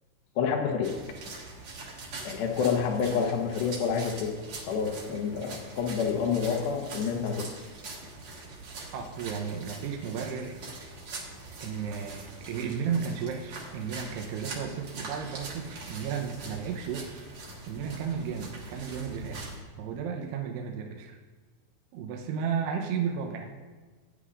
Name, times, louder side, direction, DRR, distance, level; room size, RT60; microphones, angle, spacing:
voice 1, 0.4-1.0 2.2-4.4 4.7-7.6, left 6 dB, 70° left, 3 dB, 2.5 m, -28 dB
sound 1, 0.8-19.6, right 3 dB, 55° right, 2.4 m, -43 dB
voice 2, 8.9-10.6 11.6-17.2 17.7-19.5 19.8-21.2 21.9-23.5, right 7 dB, 75° right, 1 dB, 2.7 m, -33 dB
16.5 x 9.6 x 2.5 m, 1.4 s
omnidirectional pair, 5.1 m